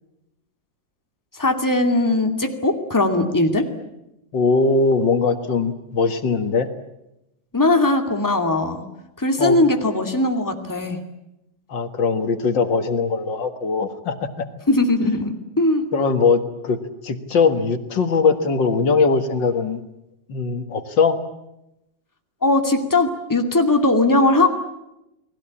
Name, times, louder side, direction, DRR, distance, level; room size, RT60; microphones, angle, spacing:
voice 1, 1.3-3.7 7.5-8.8 9.2-11.0 14.7-15.9 22.4-24.5, left 2 dB, 10° left, 5 dB, 2.4 m, -19 dB
voice 2, 4.3-6.7 9.4-9.6 11.7-14.5 15.9-19.8 20.3-21.2, left 4 dB, 75° left, 8 dB, 2.3 m, -20 dB
29.5 x 20.0 x 8.7 m, 0.88 s
omnidirectional pair, 2.0 m